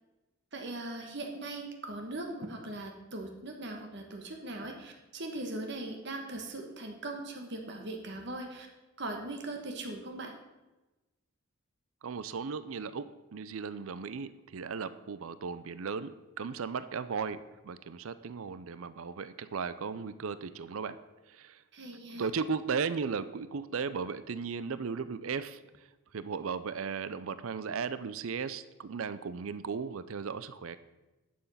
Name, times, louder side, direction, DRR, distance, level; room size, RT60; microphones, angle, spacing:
voice 1, 0.5-8.7 9.0-10.3 21.7-22.3, right 2 dB, 55° right, 3 dB, 1.2 m, -40 dB
voice 2, 12.0-21.0 21.3-21.6 22.1-25.6 26.1-30.8, right 5 dB, 75° right, 14 dB, 0.5 m, -36 dB
10.5 x 7.0 x 5.5 m, 1.1 s
head